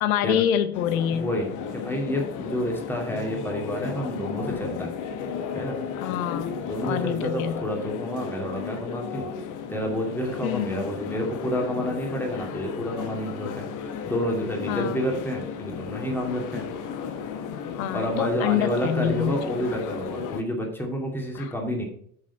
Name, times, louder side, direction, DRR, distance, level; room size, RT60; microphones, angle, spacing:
voice 1, 0.0-1.3 6.0-7.6 10.4-10.8 14.7-15.0 17.8-19.4 21.3-21.5, left 10 dB, 65° left, 13 dB, 1.0 m, -26 dB
sound 1, 0.7-20.4, left 6 dB, 40° left, 1.2 m, -34 dB
voice 2, 1.1-4.9 5.5-5.8 6.7-9.3 9.7-13.7 14.0-16.6 17.9-21.9, equal, 5° left, 1 dB, 2.5 m, -29 dB
9.3 x 6.2 x 4.1 m, 0.65 s
hypercardioid pair, 75°, 44 cm